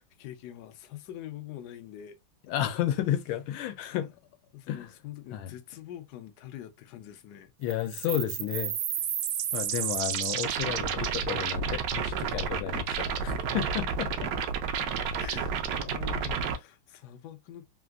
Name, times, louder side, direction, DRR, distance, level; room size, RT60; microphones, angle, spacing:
voice 1, 0.0-2.2 2.6-2.7 3.9-4.1 4.5-7.5 12.7-12.9 15.2-17.7, left 12 dB, 70° left, 0.9 m, -45 dB
voice 2, 2.5-4.1 4.7-4.9 5.3-5.5 7.6-8.7 9.5-12.8 13.2-14.3, left 11 dB, 90° left, 1.5 m, -32 dB
sound 1, 7.7-16.6, right 7 dB, 75° right, 1.0 m, -31 dB
3.7 x 2.5 x 2.3 m
omnidirectional pair, 2.2 m